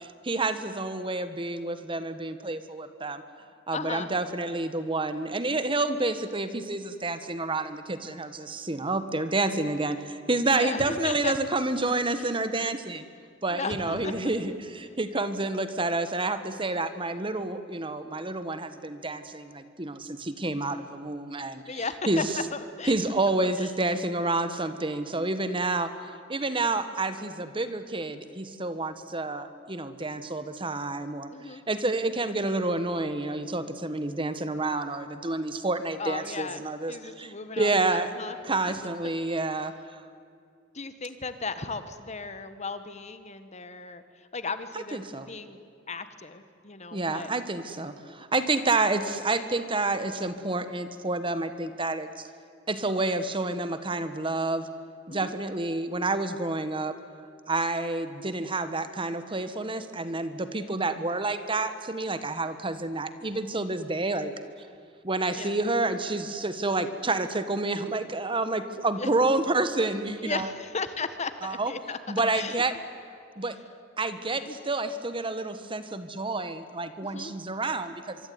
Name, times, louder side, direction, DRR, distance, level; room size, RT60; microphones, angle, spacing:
voice 1, 0.0-3.2 3.7-13.0 13.4-21.6 22.1-22.2 22.9-25.9 26.3-31.3 31.7-38.1 38.4-39.7 44.9-45.3 46.9-52.3 52.7-54.7 55.1-56.9 57.5-64.3 65.0-70.5 71.4-71.7 72.1-72.7 73.4-73.6 74.0-78.2, right 2 dB, 25° right, 11 dB, 1.4 m, -29 dB
voice 2, 3.7-4.1 10.5-11.3 12.1-12.4 13.5-14.2 21.7-23.0 23.6-23.7 27.6-27.8 31.3-31.6 36.0-38.4 40.7-44.0 44.3-45.6 45.9-47.3 48.4-48.5 55.1-55.3 65.4-65.5 69.0-69.1 70.2-72.0 72.3-72.6 74.4-74.6 77.0-77.3, left 4 dB, 35° left, 11 dB, 1.5 m, -36 dB
24.5 x 24.5 x 9.6 m, 2.4 s
head